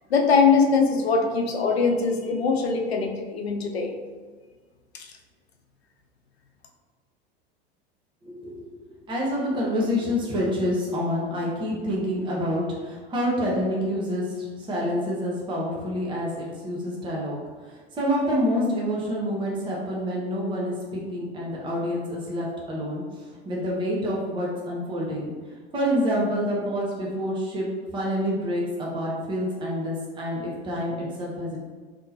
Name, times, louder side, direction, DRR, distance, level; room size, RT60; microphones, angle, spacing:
voice 1, 0.1-4.0 4.9-5.1, left 5 dB, 80° left, 2 dB, 0.6 m, -22 dB
voice 2, 8.2-8.7 9.1-17.4 17.7-25.3 25.7-27.7 27.9-31.6, equal, 15° right, -5 dB, 0.8 m, -27 dB
3.6 x 2.9 x 2.7 m, 1.5 s
figure-of-eight pair, 85°, 31 cm